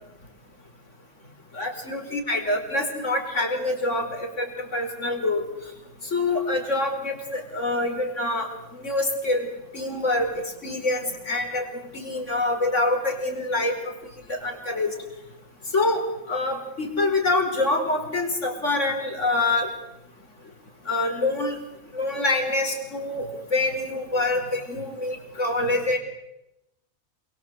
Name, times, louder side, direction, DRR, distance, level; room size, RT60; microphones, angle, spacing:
voice 1, 1.5-5.4 6.0-8.5 8.8-9.5 9.7-11.7 11.9-13.9 14.3-14.9 15.7-19.7 20.8-21.6 21.9-26.0, left 2 dB, 60° left, 4 dB, 5.1 m, -26 dB
27.5 x 24.0 x 8.1 m, 0.89 s
omnidirectional pair, 1.4 m